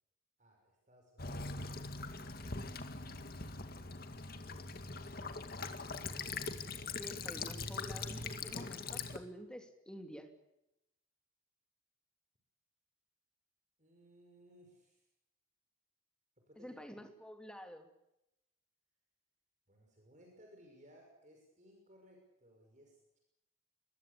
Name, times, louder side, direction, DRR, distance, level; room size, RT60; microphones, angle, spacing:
voice 1, 0.4-1.6 2.1-2.4 2.7-3.1 3.6-3.9 13.8-15.1 16.4-16.8 19.7-23.2, equal, 35° right, 1 dB, 6.1 m, -63 dB
Child speech kid speaking / Bird vocalization bird call bird song / Stream, 1.2-9.2, left 4 dB, 45° left, 2.1 m, -42 dB
voice 2, 7.0-10.3 16.6-17.9, equal, 5° left, 5 dB, 2.8 m, -49 dB
24.5 x 21.5 x 8.5 m, 0.87 s
head